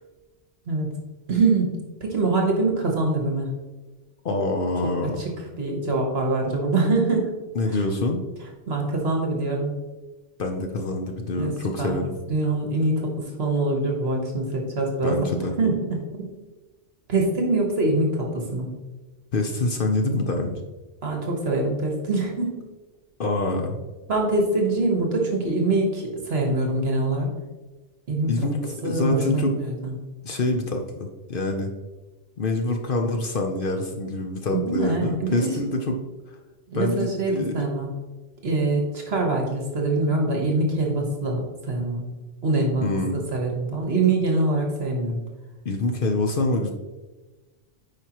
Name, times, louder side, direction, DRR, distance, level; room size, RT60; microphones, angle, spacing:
voice 1, 1.3-3.5 5.6-7.3 8.7-9.7 11.4-11.5 11.8-12.0 12.3-13.1 13.4-15.2 15.6-15.7 16.1-16.3 17.1-18.7 21.0-22.5 24.1-27.3 28.1-28.3 28.8-29.5 29.8-29.9 34.5-35.5 36.7-37.9 38.4-42.0 42.4-42.9 43.3-45.2, right 2 dB, 60° right, 0 dB, 1.4 m, -24 dB
voice 2, 4.2-5.2 7.5-8.2 10.4-12.2 15.0-15.5 19.3-20.6 23.2-23.8 28.3-29.6 30.2-31.7 32.4-36.0 36.7-37.7 42.8-43.3 45.6-46.7, left 2 dB, 55° left, 4 dB, 0.8 m, -26 dB
9.3 x 4.9 x 2.9 m, 1.2 s
omnidirectional pair, 1.2 m